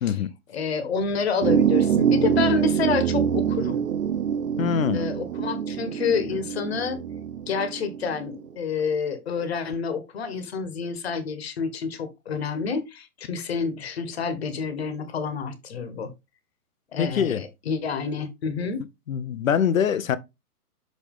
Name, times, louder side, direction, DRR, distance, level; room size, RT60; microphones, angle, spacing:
voice 1, 0.5-3.8 4.9-7.0 7.5-16.1 16.9-18.8, left 5 dB, 40° left, 1.4 m, -28 dB
sound 1, 1.4-8.4, right 8 dB, 60° right, 0.7 m, -25 dB
voice 2, 4.6-5.1 17.0-17.4 19.1-20.2, left 8 dB, 60° left, 0.8 m, -23 dB
6.3 x 5.2 x 3.7 m
hypercardioid pair, 170°, 46 cm